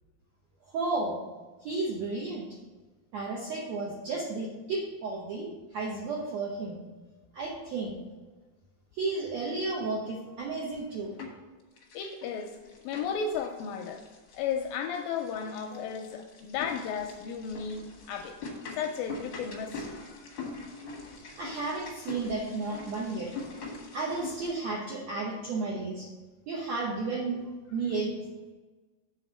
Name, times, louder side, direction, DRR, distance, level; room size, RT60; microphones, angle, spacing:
voice 1, 0.7-1.2 1.6-2.5 3.1-6.8 7.3-8.0 9.0-11.1 21.4-23.3 23.9-26.1 26.5-27.4 27.7-28.1, right 3 dB, 75° right, -2 dB, 1.5 m, -33 dB
sound 1, 10.6-11.5 11.8-24.5, left 3 dB, 65° left, 1.1 m, -44 dB
voice 2, 11.9-12.5 12.8-14.1 14.3-18.4 18.8-20.3, left 6 dB, 85° left, 5 dB, 2.1 m, -34 dB
8.1 x 4.2 x 7.0 m, 1.3 s
omnidirectional pair, 4.5 m